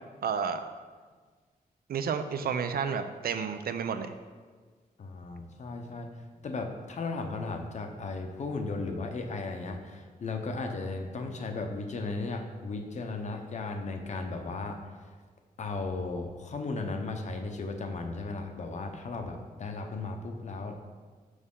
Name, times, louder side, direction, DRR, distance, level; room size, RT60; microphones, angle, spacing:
voice 1, 0.2-0.7 1.9-4.1, right 6 dB, 80° right, 9 dB, 0.5 m, -31 dB
voice 2, 5.0-6.1 6.4-14.9 15.6-20.8, left 3 dB, 50° left, 5 dB, 0.7 m, -36 dB
6.6 x 6.3 x 3.7 m, 1.5 s
wide cardioid pair, 180°, 15 cm